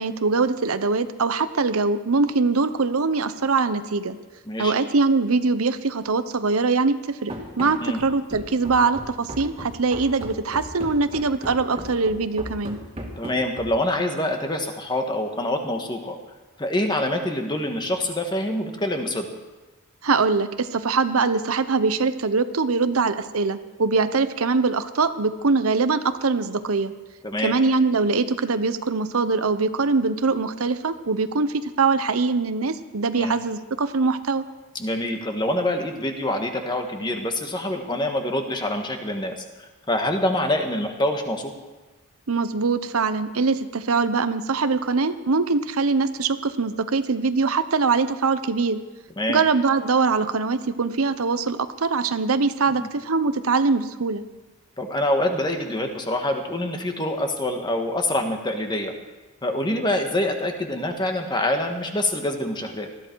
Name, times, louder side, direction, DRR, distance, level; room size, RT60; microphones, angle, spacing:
voice 1, 0.0-4.2 4.6-12.8 20.0-26.9 27.4-34.4 42.3-48.8 49.3-54.2, right 4 dB, 80° right, 11 dB, 0.8 m, -22 dB
Run, 7.3-13.9, equal, 25° right, 2.4 m, -37 dB
voice 2, 13.2-16.2 16.6-19.3 27.2-27.6 33.1-33.3 34.7-39.4 39.9-41.5 49.2-49.4 52.8-52.9 54.8-58.9 59.4-62.9, left 1 dB, 20° left, 4 dB, 1.5 m, -25 dB
19.5 x 14.0 x 4.7 m, 1.2 s
head